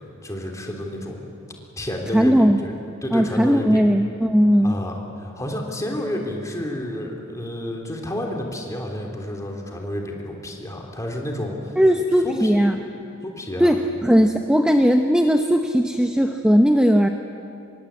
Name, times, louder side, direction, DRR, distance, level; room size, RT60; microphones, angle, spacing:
voice 1, 0.2-1.2 1.8-2.7 3.0-3.8 4.6-11.7 12.2-12.7 13.2-13.7, left 1 dB, 15° left, 1 dB, 3.3 m, -30 dB
voice 2, 2.1-2.6 3.1-4.8 11.8-12.7 13.6-17.1, equal, 5° right, 5 dB, 0.8 m, -18 dB
26.0 x 22.5 x 8.4 m, 2.6 s
head